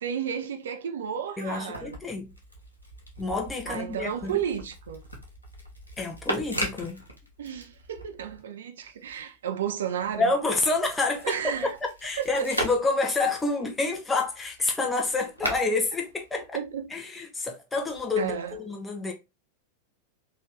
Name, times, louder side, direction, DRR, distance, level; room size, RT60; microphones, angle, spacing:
voice 1, 0.0-2.0 3.7-5.0 7.4-10.3 11.2-11.8 12.2-12.5 16.5-16.9 18.2-18.6, right 9 dB, 65° right, 0.6 m, -32 dB
voice 2, 1.4-2.3 3.2-4.4 6.0-7.0 10.2-11.6 12.0-16.6 16.9-19.1, left 3 dB, 10° left, 0.8 m, -28 dB
sound 1, 1.5-8.4 8.8-16.9 17.8-18.6, equal, 85° left, 1.1 m, -39 dB
3.7 x 2.6 x 3.2 m
figure-of-eight pair, 90°, 0 cm